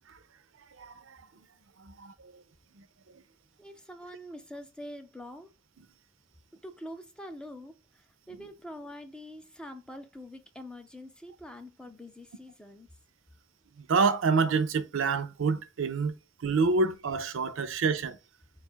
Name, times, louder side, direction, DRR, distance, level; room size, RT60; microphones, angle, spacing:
voice 1, 3.6-5.5 6.5-12.9, equal, 5° left, 0.4 m, -45 dB
voice 2, 13.9-16.1 16.4-18.2, right 4 dB, 70° right, 0.5 m, -26 dB
3.9 x 2.4 x 4.3 m
head